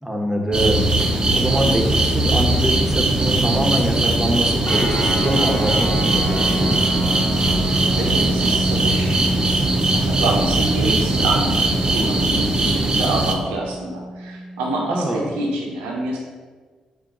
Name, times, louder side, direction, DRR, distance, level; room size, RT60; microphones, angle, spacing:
voice 1, 0.0-6.9 14.9-15.2, right 1 dB, 10° right, 0 dB, 1.0 m, -24 dB
sound 1, 0.5-13.3, right 2 dB, 30° right, 0.6 m, -20 dB
sound 2, 4.6-15.6, equal, 60° left, 0.9 m, -28 dB
voice 2, 7.6-9.2 9.5-16.2, right 2 dB, 85° right, -1 dB, 0.7 m, -27 dB
5.5 x 2.2 x 3.8 m, 1.4 s
hypercardioid pair, 45°, 3 cm